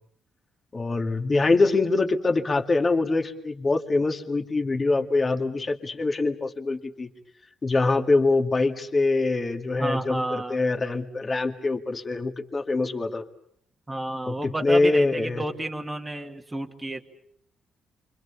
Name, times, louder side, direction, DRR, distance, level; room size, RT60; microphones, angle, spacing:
voice 1, 0.7-7.1 7.6-13.2 14.3-15.4, left 3 dB, 25° left, 5 dB, 2.1 m, -24 dB
voice 2, 9.8-10.6 13.9-17.1, right 1 dB, 10° right, 2 dB, 1.8 m, -31 dB
29.0 x 24.5 x 7.0 m, 0.66 s
cardioid pair, 155°, 0 cm